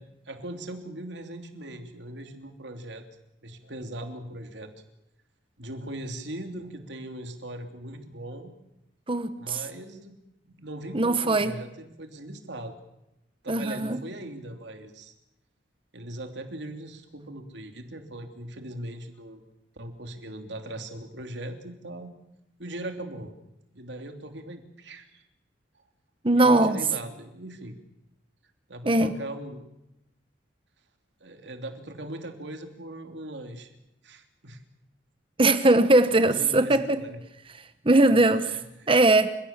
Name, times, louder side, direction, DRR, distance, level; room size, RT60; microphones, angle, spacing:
voice 1, 0.0-3.0 3.4-4.7 5.6-8.5 9.4-10.2 10.4-12.7 13.4-15.1 15.9-19.4 19.7-22.1 22.6-23.3 23.7-25.2 26.3-27.7 28.7-29.6 31.2-33.8 34.0-34.6 36.0-37.2 38.5-38.9, right 1 dB, 65° right, 3.1 m, -39 dB
voice 2, 9.1-9.6 10.9-11.5 13.5-14.0 26.2-26.8 28.9-29.1 35.4-37.0 37.8-38.6 38.9-39.3, right 2 dB, 30° right, 1.0 m, -20 dB
29.5 x 16.5 x 7.4 m
head